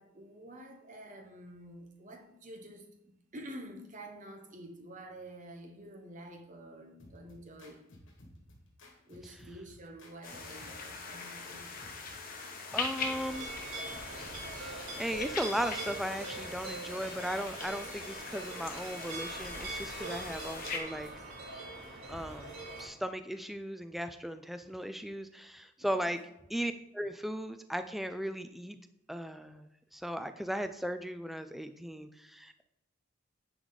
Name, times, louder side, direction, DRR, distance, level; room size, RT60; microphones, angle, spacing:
voice 1, 0.0-7.8 9.1-11.7 25.8-26.0, right 1 dB, 35° right, 3 dB, 1.2 m, -49 dB
sound 1, 7.0-16.6, left 1 dB, 60° left, 1.7 m, -56 dB
sound 2, 10.2-20.8, left 4 dB, 40° left, 1.2 m, -42 dB
voice 2, 12.7-13.5 14.6-21.1 22.1-26.2 26.5-28.8 29.1-32.6, equal, ahead, 9 dB, 0.3 m, -37 dB
sound 3, 13.0-22.9, right 2 dB, 80° right, 2.9 m, -42 dB
9.8 x 4.8 x 4.0 m, 0.86 s
head